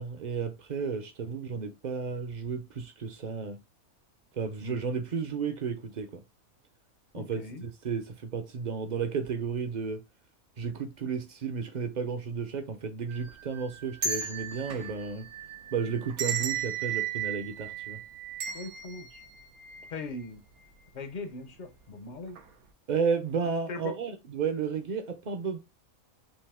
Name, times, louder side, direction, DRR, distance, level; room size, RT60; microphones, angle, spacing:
voice 1, 0.0-3.6 4.3-6.2 7.1-10.0 10.6-15.3 15.7-18.0 22.9-25.6, right 6 dB, 45° right, 0.6 m, -33 dB
voice 2, 7.1-7.6 18.5-19.2 19.9-20.4 20.9-22.4 23.7-24.0, left 3 dB, 45° left, 0.7 m, -40 dB
sound 1, 13.1-20.3 20.6-20.7 21.6-21.9 22.3-22.5, right 7 dB, 85° right, 1.3 m, -36 dB
5.4 x 2.7 x 3.5 m
omnidirectional pair, 1.5 m